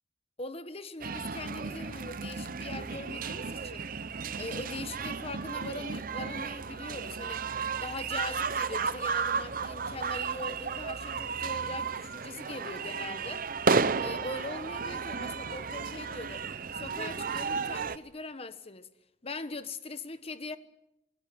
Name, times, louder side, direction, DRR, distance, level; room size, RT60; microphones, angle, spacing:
voice 1, 0.4-3.9 4.3-7.5 7.8-13.4 14.0-16.4 16.7-18.9 19.2-20.6, left 2 dB, 35° left, 1.3 m, -41 dB
sound 1, 1.0-18.0, right 5 dB, 50° right, 0.8 m, -33 dB
26.0 x 20.5 x 7.9 m
head